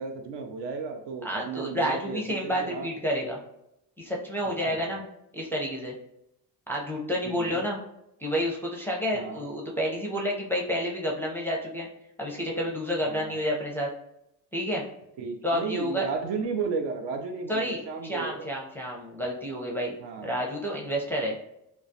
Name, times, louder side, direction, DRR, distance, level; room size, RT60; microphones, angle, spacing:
voice 1, 0.0-2.9 4.5-4.8 7.2-7.6 9.1-9.4 13.0-13.4 15.2-18.5 20.0-20.4, right 5 dB, 60° right, 5 dB, 0.5 m, -34 dB
voice 2, 1.2-3.4 4.0-5.0 5.3-5.9 6.7-7.8 8.2-11.9 12.2-13.9 14.5-14.8 15.4-16.1 17.5-19.9 20.2-21.3, equal, 5° left, -3 dB, 0.5 m, -30 dB
2.2 x 2.1 x 2.6 m, 0.82 s
hypercardioid pair, 50°, 50 cm